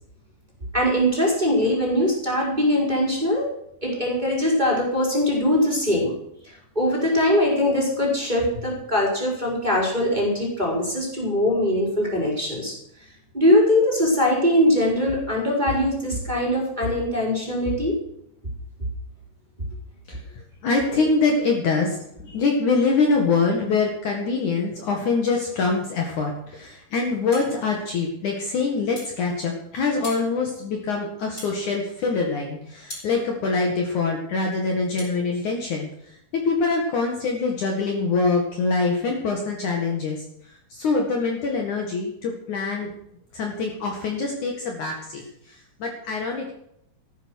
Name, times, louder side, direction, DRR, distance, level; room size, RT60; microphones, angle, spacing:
voice 1, 0.7-3.5 3.8-6.1 6.7-12.7 13.3-17.9, left 1 dB, 10° right, -4 dB, 4.5 m, -21 dB
voice 2, 20.1-35.9 36.3-40.2 40.7-42.9 43.3-46.5, left 4 dB, 55° left, 1 dB, 3.0 m, -24 dB
sound 1, 27.3-27.5 29.0-29.2 30.0-30.3 31.4-31.6 32.9-33.1 35.0-35.2, left 1 dB, 25° left, 6.2 m, -38 dB
14.5 x 11.0 x 6.4 m, 0.75 s
omnidirectional pair, 4.6 m